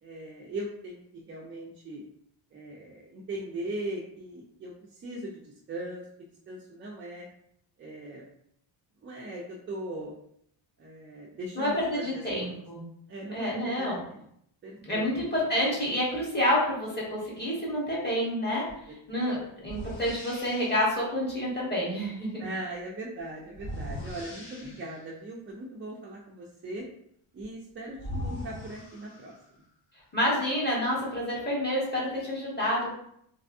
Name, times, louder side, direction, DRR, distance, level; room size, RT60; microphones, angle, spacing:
voice 1, 0.0-2.0 2.5-7.3 7.8-8.2 9.0-10.1 10.8-12.5 13.1-14.2 14.6-15.3 18.9-19.3 22.4-26.9 27.3-29.4, right 1 dB, 30° right, -4 dB, 0.3 m, -39 dB
voice 2, 11.5-12.8 13.3-14.0 14.8-18.7 19.1-22.5 30.1-32.9, equal, 20° left, -6 dB, 1.3 m, -28 dB
sound 1, 18.7-18.8 19.6-20.9 23.5-25.1 27.4-27.5 27.9-29.6, left 1 dB, 70° left, 1.4 m, -40 dB
3.3 x 3.2 x 2.6 m, 0.71 s
cardioid pair, 160°, 48 cm